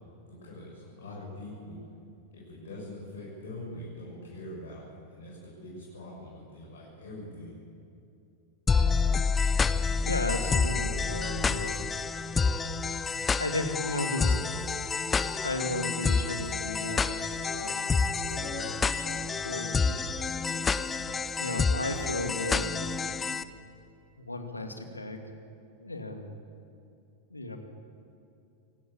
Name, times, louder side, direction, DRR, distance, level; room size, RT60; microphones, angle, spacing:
voice 1, 0.2-1.9 2.3-7.6 21.1-21.2, left 1 dB, 60° left, -6 dB, 7.7 m, -43 dB
sound 1, 8.7-23.4, left 5 dB, 15° left, 0.8 m, -28 dB
voice 2, 10.0-11.8 13.4-14.4 15.4-20.1 21.4-22.8 24.2-25.3 25.8-26.3 27.3-27.6, left 2 dB, 80° left, 5 dB, 2.4 m, -35 dB
25.5 x 17.5 x 8.7 m, 2.6 s
figure-of-eight pair, 90°, 0 cm